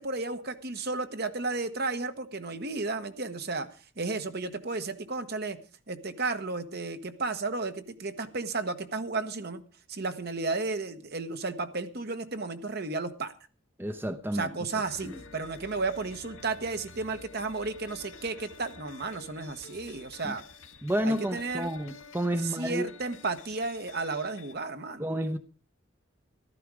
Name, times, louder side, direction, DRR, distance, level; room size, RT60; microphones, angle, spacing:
voice 1, 0.0-3.7 4.0-5.6 5.9-9.6 9.9-13.3 14.3-20.4 21.0-21.7 22.4-25.1, right 3 dB, 55° right, 8 dB, 1.3 m, -33 dB
voice 2, 13.8-14.5 15.0-15.2 20.2-20.3 20.8-22.9 25.0-25.4, right 1 dB, 10° right, 8 dB, 0.7 m, -30 dB
sound 1, 14.8-24.5, left 4 dB, 80° left, 1.4 m, -50 dB
14.5 x 12.5 x 4.9 m, 0.38 s
head